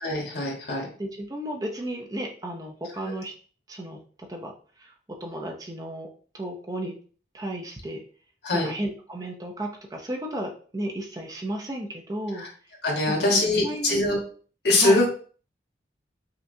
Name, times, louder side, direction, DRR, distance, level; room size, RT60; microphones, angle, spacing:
voice 1, 0.0-0.9 8.4-8.7 12.3-12.5 12.8-14.2 14.6-15.1, left 2 dB, 70° left, -1 dB, 1.3 m, -23 dB
voice 2, 1.0-3.3 3.7-4.0 4.3-4.5 4.8-4.9 5.2-6.1 6.3-6.9 7.3-8.0 8.6-12.4 13.6-14.0 14.8-15.0, right 1 dB, 20° right, 1 dB, 0.5 m, -33 dB
5.6 x 2.3 x 2.7 m, 0.42 s
head